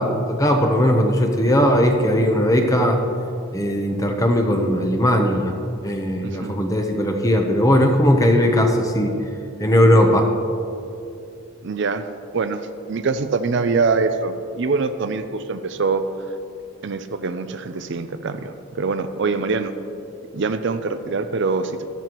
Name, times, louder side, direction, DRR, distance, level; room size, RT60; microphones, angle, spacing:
voice 1, 0.0-3.0 3.5-5.6 5.8-9.1 9.6-10.3, equal, 15° left, 4 dB, 0.8 m, -18 dB
voice 2, 6.2-6.5 11.6-12.0 12.3-12.6 12.9-16.0 16.8-19.7 20.3-21.9, right 4 dB, 55° right, 10 dB, 0.5 m, -24 dB
14.0 x 12.5 x 3.0 m, 2.7 s
head